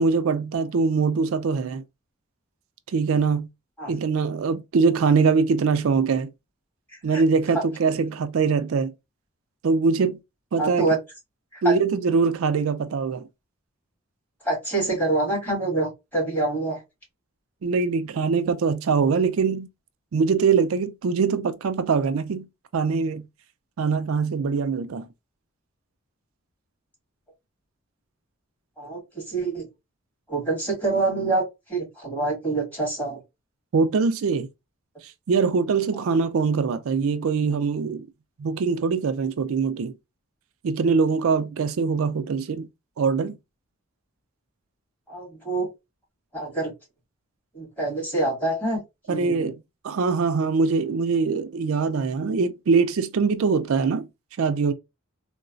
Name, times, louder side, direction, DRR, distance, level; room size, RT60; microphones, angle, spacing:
voice 1, 0.0-1.8 2.9-3.5 3.9-6.3 7.0-8.9 9.6-10.2 10.5-10.9 11.6-13.3 17.6-19.7 20.1-22.5 22.7-23.3 23.8-25.1 33.7-34.5 35.0-38.1 38.4-39.9 40.6-42.7 43.0-43.4 49.1-49.6 49.8-54.1 54.4-54.7, right 5 dB, 80° right, 0.4 m, -23 dB
voice 2, 6.9-7.2 10.6-11.0 11.5-11.7 14.4-16.8 28.8-29.7 30.3-33.2 45.1-45.7 46.3-46.7 47.5-48.8 49.1-49.5, right 2 dB, 10° left, 2.0 m, -26 dB
3.8 x 2.2 x 2.4 m
head